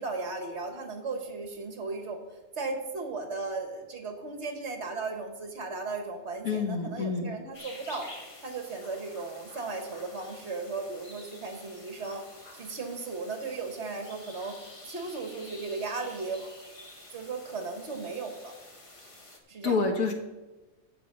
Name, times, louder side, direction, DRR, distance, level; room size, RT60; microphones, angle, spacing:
voice 1, 0.0-2.2 2.6-8.1 8.4-12.2 12.5-14.6 14.8-16.5 17.1-18.5 19.5-19.8, right 3 dB, 55° right, 5 dB, 1.7 m, -36 dB
voice 2, 6.4-7.4 19.6-20.1, left 4 dB, 85° left, 4 dB, 1.8 m, -28 dB
sound 1, 7.5-19.4, left 2 dB, 25° left, 1.3 m, -49 dB
14.5 x 5.5 x 5.4 m, 1.1 s
omnidirectional pair, 1.4 m